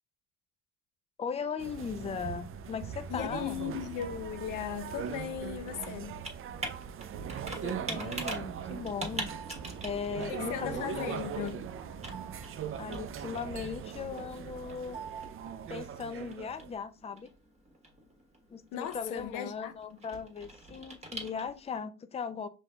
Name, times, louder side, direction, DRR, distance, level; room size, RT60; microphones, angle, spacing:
voice 1, 1.2-3.6 7.6-9.3 9.8-11.3 12.8-15.0 15.7-17.3 18.5-22.5, left 6 dB, 20° left, 0.4 m, -38 dB
sound 1, 1.6-16.8, right 8 dB, 45° right, 0.4 m, -41 dB
voice 2, 3.1-6.2 10.3-11.6 18.7-19.7, left 9 dB, 90° left, 0.6 m, -37 dB
Computer keyboard, 3.5-21.8, right 2 dB, 20° right, 1.3 m, -45 dB
sound 2, 7.1-14.3, right 5 dB, 90° right, 0.8 m, -49 dB
5.2 x 3.7 x 2.3 m
cardioid pair, 90°, 30 cm